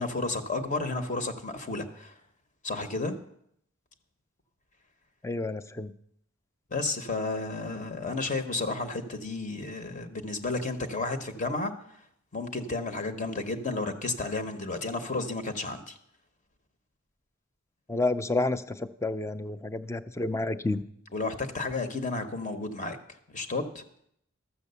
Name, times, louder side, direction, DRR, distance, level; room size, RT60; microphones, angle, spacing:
voice 1, 0.0-2.2 2.6-3.1 6.7-11.7 12.3-16.0 21.1-23.0 23.3-23.8, left 3 dB, 35° left, 7 dB, 0.9 m, -32 dB
voice 2, 5.2-5.9 17.9-20.8, left 2 dB, 15° left, 12 dB, 0.4 m, -30 dB
13.0 x 7.3 x 6.8 m, 0.72 s
head